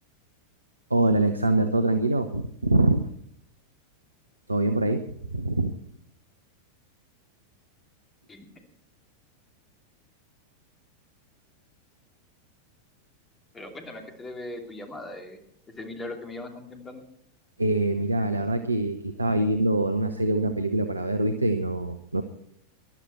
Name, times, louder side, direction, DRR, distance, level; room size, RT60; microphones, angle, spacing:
voice 1, 0.9-3.1 4.5-5.0 5.3-5.7 17.6-22.2, right 2 dB, 80° right, 8 dB, 0.8 m, -24 dB
voice 2, 13.5-15.4 15.8-17.0, left 2 dB, 15° left, 4 dB, 2.8 m, -39 dB
19.5 x 12.0 x 4.4 m, 0.72 s
figure-of-eight pair, 90°, 0 cm